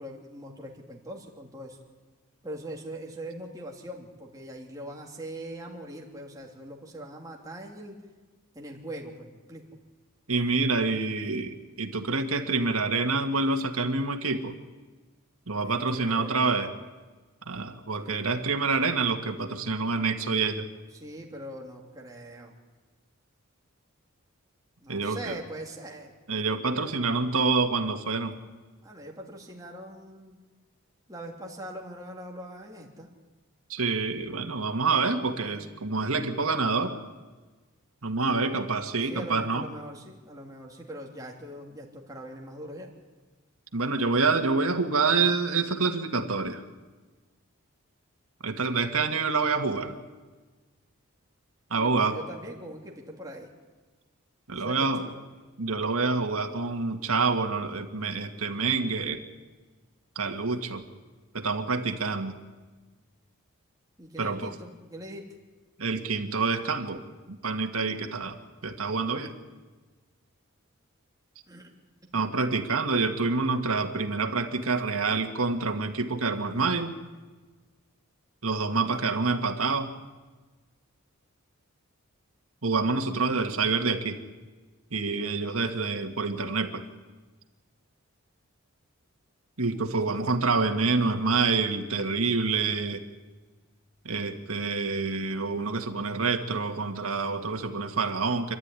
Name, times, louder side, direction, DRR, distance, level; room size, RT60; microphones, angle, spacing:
voice 1, 0.0-1.8 2.4-8.0 8.5-9.8 15.6-16.3 20.9-22.5 24.8-26.1 28.8-30.4 31.1-33.1 34.9-35.1 35.4-35.6 39.0-42.9 51.7-53.5 54.5-55.2 64.0-65.2 71.5-71.7 72.1-72.4 78.8-79.0 89.7-90.4, right 1 dB, 15° right, -1 dB, 3.0 m, -42 dB
voice 2, 10.3-14.5 15.5-16.7 17.5-20.7 24.9-25.3 26.3-28.4 33.7-36.9 38.0-39.7 43.7-46.6 48.4-49.9 51.7-52.2 54.5-55.0 55.6-59.2 60.2-60.8 61.3-62.4 64.2-64.5 65.8-68.4 68.6-69.3 72.1-76.9 78.4-79.9 82.6-84.2 84.9-86.8 89.6-93.0 94.0-98.6, right 4 dB, 80° right, 4 dB, 2.0 m, -27 dB
27.5 x 12.5 x 9.9 m, 1.3 s
head